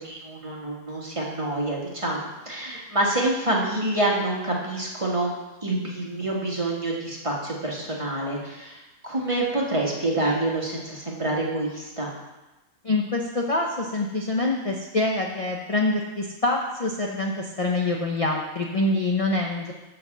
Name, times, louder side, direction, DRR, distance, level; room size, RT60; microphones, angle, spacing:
voice 1, 0.0-2.2 2.4-5.3 5.6-12.1, right 1 dB, 20° right, -3 dB, 1.7 m, -27 dB
voice 2, 12.8-19.7, left 2 dB, 30° left, 0 dB, 0.7 m, -25 dB
7.7 x 5.8 x 7.3 m, 1.0 s
omnidirectional pair, 1.5 m